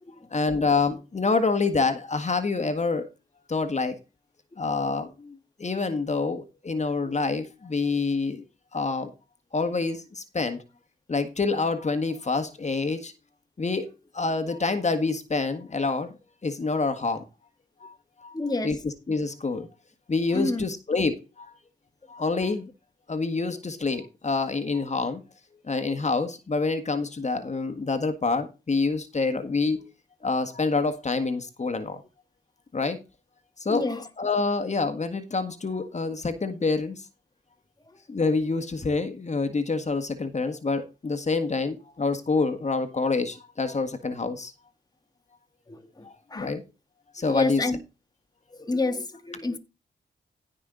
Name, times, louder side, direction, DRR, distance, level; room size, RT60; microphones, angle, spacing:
voice 1, 0.3-3.1 3.5-3.9 4.6-8.4 8.7-9.1 9.5-10.6 11.1-13.1 13.6-16.1 16.4-17.2 17.8-17.9 18.2-18.3 18.6-19.7 20.1-21.5 22.1-22.7 23.1-25.2 25.7-29.8 30.2-32.0 32.7-33.0 33.6-37.0 38.1-44.5 46.0-46.6 47.1-47.7, left 3 dB, 40° left, 1.7 m, -27 dB
voice 2, 18.3-18.8 20.3-20.6 33.7-34.1 37.9-38.0 45.7-46.6 47.2-47.8 48.5-49.6, left 2 dB, 20° left, 1.6 m, -29 dB
15.5 x 5.6 x 3.9 m
cardioid pair, 70°, 19 cm